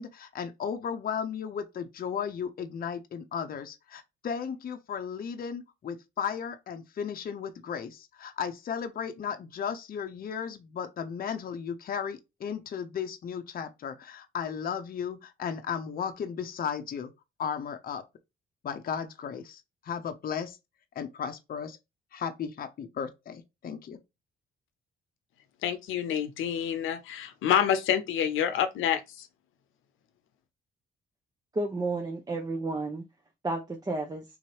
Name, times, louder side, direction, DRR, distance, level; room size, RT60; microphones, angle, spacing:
voice 1, 0.0-17.1 17.4-18.1 18.6-20.6 20.9-21.8 22.1-24.0, left 7 dB, 45° left, 0.7 m, -35 dB
voice 2, 25.6-29.3, left 9 dB, 85° left, 0.7 m, -27 dB
voice 3, 31.5-33.0 33.4-34.2, right 2 dB, 20° right, 0.6 m, -31 dB
3.9 x 3.0 x 2.8 m
cardioid pair, 90°, 20 cm